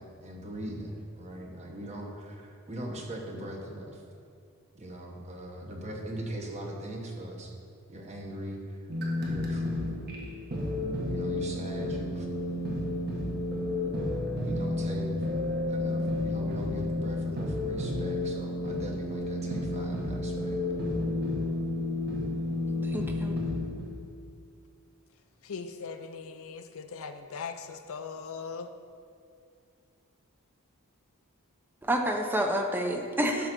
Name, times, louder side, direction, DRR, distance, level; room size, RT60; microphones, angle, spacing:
voice 1, 0.0-4.0 4.7-7.5 7.9-8.8 9.2-9.6 11.1-12.3 14.4-15.1 15.7-20.6, right 1 dB, 30° right, 0 dB, 1.2 m, -40 dB
sound 1, 8.9-24.0, left 2 dB, 45° right, 1.5 m, -31 dB
voice 2, 22.8-23.4 31.8-33.5, right 1 dB, 10° right, 2 dB, 0.7 m, -29 dB
voice 3, 25.4-28.7, left 5 dB, 65° left, 8 dB, 0.5 m, -39 dB
11.5 x 3.9 x 6.1 m, 2.4 s
head